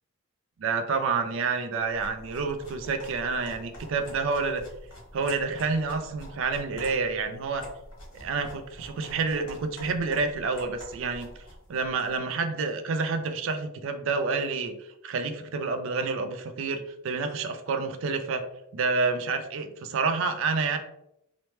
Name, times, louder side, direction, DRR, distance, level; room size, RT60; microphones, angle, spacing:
voice 1, 0.6-4.6 5.1-7.6 8.2-11.3 11.7-14.7 15.0-18.4 18.7-20.8, right 4 dB, 65° right, 8 dB, 0.4 m, -28 dB
sound 1, 1.8-12.2, equal, 85° left, 1.2 m, -46 dB
2.9 x 2.1 x 3.0 m, 0.80 s
head